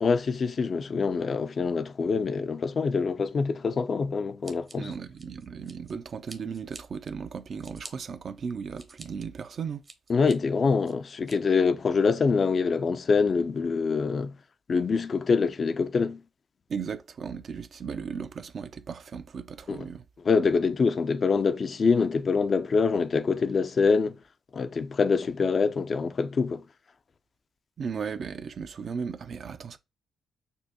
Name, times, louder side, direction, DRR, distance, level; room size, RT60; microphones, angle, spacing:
voice 1, 0.0-4.9 10.1-14.4 14.7-16.2 19.7-19.9 20.2-24.2 24.5-26.6, left 5 dB, 50° left, 0.3 m, -25 dB
Scissors, 4.4-5.9 6.3-6.8 7.3-7.9 8.5-9.1 9.5-10.3 10.8-11.4, right 3 dB, 40° right, 0.7 m, -47 dB
voice 2, 4.8-9.8 16.7-20.0 27.8-29.8, right 6 dB, 55° right, 0.4 m, -36 dB
5.2 x 2.0 x 2.7 m
supercardioid pair, 55°, 0 cm